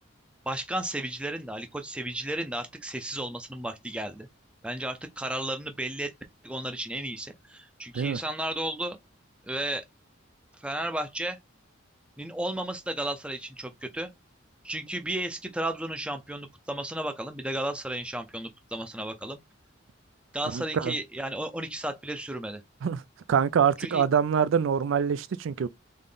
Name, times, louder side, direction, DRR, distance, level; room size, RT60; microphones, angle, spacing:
voice 1, 0.5-4.3 4.6-6.1 6.4-9.0 9.5-9.9 10.6-11.4 12.2-14.1 14.6-19.4 20.3-22.6 23.8-24.0, right 1 dB, 5° right, 0.5 m, -33 dB
voice 2, 20.5-20.9 22.8-23.0 23.3-25.7, right 7 dB, 70° right, 0.4 m, -25 dB
3.8 x 3.7 x 3.8 m
head